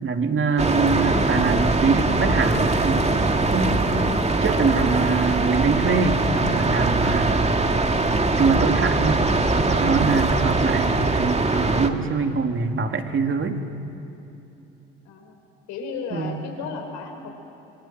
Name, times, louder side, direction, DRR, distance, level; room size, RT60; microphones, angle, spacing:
voice 1, 0.0-3.8 4.4-7.5 8.0-13.6 16.1-16.4, right 4 dB, 40° right, 5 dB, 2.8 m, -24 dB
sound 1, 0.6-11.9, right 2 dB, 20° right, 2.4 m, -22 dB
voice 2, 15.0-15.4 15.7-17.3, left 5 dB, 75° left, 3 dB, 5.3 m, -34 dB
25.5 x 24.5 x 7.7 m, 2.9 s
hypercardioid pair, 55°, 30 cm